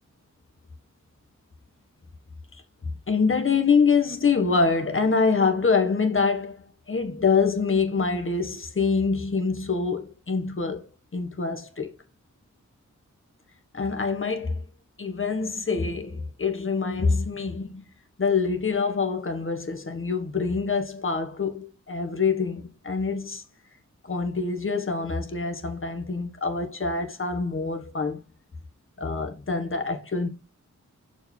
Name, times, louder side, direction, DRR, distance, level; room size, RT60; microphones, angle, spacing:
voice 1, 2.8-11.9 13.7-14.6 15.0-17.8 18.2-23.4 24.0-28.2 29.0-30.3, left 4 dB, 45° left, 1.5 m, -25 dB
6.6 x 4.7 x 4.6 m
wide cardioid pair, 100°, 30 cm